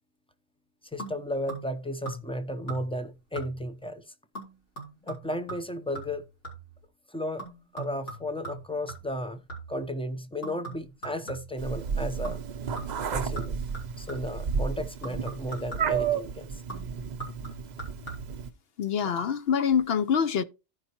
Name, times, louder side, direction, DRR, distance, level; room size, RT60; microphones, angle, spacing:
voice 1, 0.8-4.1 5.0-6.3 7.1-7.5 7.7-9.4 9.7-12.4 13.1-13.6 14.0-16.6, left 1 dB, 5° left, 0.5 m, -34 dB
sound 1, 1.0-1.8 2.1-2.4 2.7-3.1 3.4-3.8 4.3-6.8 7.4-9.9 10.4-11.7 12.2-12.5 12.8-14.4 15.0-16.1 16.7-18.5 19.0-19.3 19.6-19.7, right 2 dB, 80° left, 3.7 m, -41 dB
Meow, 11.6-18.5, right 6 dB, 45° right, 0.6 m, -32 dB
voice 2, 18.8-20.4, left 7 dB, 65° left, 0.8 m, -25 dB
15.5 x 5.4 x 2.9 m
omnidirectional pair, 1.2 m